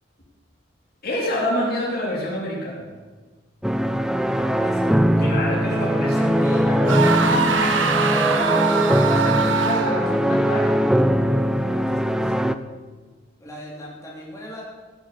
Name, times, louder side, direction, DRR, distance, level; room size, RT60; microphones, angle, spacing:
voice 1, 1.0-2.9 5.2-8.5 9.1-10.9, left 1 dB, 55° left, -3 dB, 3.3 m, -28 dB
sound 1, 3.6-12.5, equal, 5° right, 0.5 m, -21 dB
voice 2, 4.3-6.7 8.5-9.6 11.7-12.5 13.4-14.6, left 1 dB, 15° left, -5 dB, 3.5 m, -41 dB
sound 2, 6.9-10.2, right 5 dB, 80° right, 1.3 m, -23 dB
16.0 x 7.8 x 6.9 m, 1.4 s
head